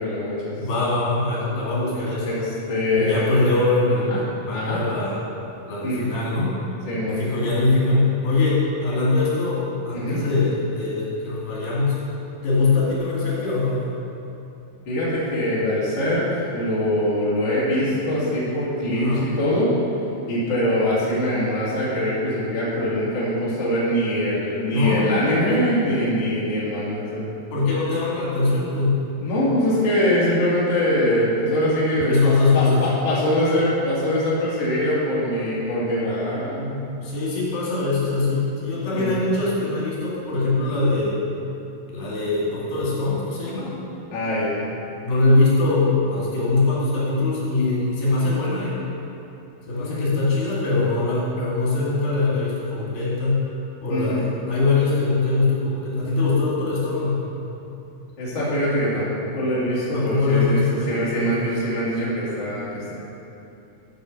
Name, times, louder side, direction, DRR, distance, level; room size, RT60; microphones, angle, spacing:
voice 1, 0.0-0.5 1.9-3.4 4.1-4.2 4.5-4.8 5.8-6.0 6.9-7.2 9.9-10.2 14.9-19.7 20.3-27.4 29.2-36.8 38.9-39.1 44.1-44.7 49.8-50.2 53.9-54.2 58.2-62.9, equal, 35° left, -8 dB, 2.7 m, -23 dB
voice 2, 0.6-2.3 3.0-4.2 4.5-5.2 5.6-6.5 7.1-12.0 12.4-13.9 19.0-19.3 24.7-25.6 27.5-29.0 32.0-32.9 37.0-41.2 41.9-43.7 45.0-48.8 49.7-53.5 53.8-57.2 59.9-61.3, left 3 dB, 80° left, -7 dB, 4.3 m, -22 dB
12.0 x 5.4 x 6.5 m, 2.8 s
omnidirectional pair, 4.1 m